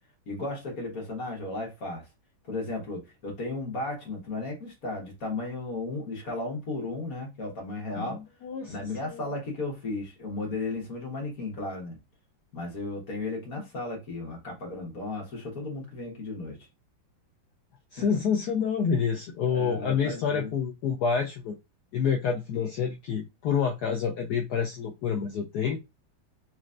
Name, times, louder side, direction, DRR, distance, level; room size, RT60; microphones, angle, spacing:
voice 1, 0.3-2.1 2.5-8.2 8.7-12.0 12.5-16.6 18.0-18.1 19.5-20.5, left 2 dB, 45° left, 1.8 m, -35 dB
voice 2, 7.9-8.7 9.1-9.2 17.9-21.5 21.9-25.8, left 6 dB, 75° left, 1.0 m, -28 dB
4.2 x 3.1 x 2.5 m
omnidirectional pair, 2.2 m